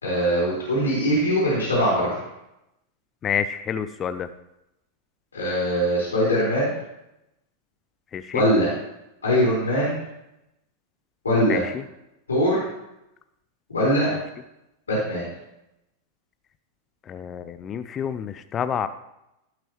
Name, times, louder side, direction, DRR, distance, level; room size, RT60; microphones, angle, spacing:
voice 1, 0.0-2.1 5.3-6.7 8.3-8.7 9.2-10.0 11.2-11.6 12.3-12.7 13.7-14.1 14.9-15.3, equal, 75° left, -7 dB, 3.6 m, -21 dB
voice 2, 3.2-4.3 8.1-8.4 11.5-11.6 17.1-18.9, left 8 dB, 25° left, 11 dB, 0.5 m, -28 dB
16.5 x 6.0 x 3.1 m, 0.87 s
figure-of-eight pair, 90°, 0 cm